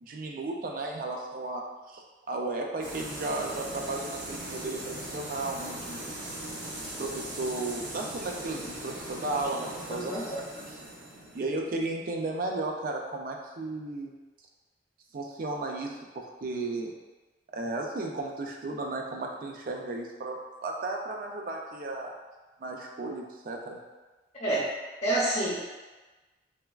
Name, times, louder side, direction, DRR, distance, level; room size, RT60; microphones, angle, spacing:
voice 1, 0.0-6.0 7.0-10.4 11.3-14.1 15.1-16.9 17.5-22.1 22.6-23.8, right 2 dB, 50° right, 1 dB, 0.3 m, -34 dB
sound 1, 2.8-12.4, right 1 dB, 75° right, 0.7 m, -40 dB
voice 2, 9.9-10.2 24.4-24.6 25.0-25.7, right 1 dB, 35° left, -7 dB, 0.5 m, -28 dB
3.2 x 2.3 x 2.3 m, 1.2 s
head